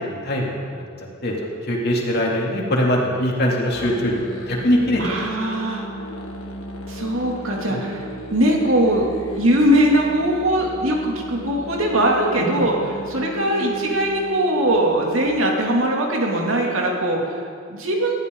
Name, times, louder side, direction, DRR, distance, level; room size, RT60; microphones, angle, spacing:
voice 1, 0.1-1.3 1.6-5.0 7.7-7.8 12.4-12.6, equal, 50° left, -2 dB, 2.9 m, -22 dB
Musical instrument, 3.7-15.3, equal, 80° left, 1.7 m, -36 dB
voice 2, 5.0-5.8 6.9-9.1 9.3-12.8 13.1-18.1, right 1 dB, 85° right, -1 dB, 2.9 m, -21 dB
20.5 x 14.0 x 4.0 m, 2.2 s
head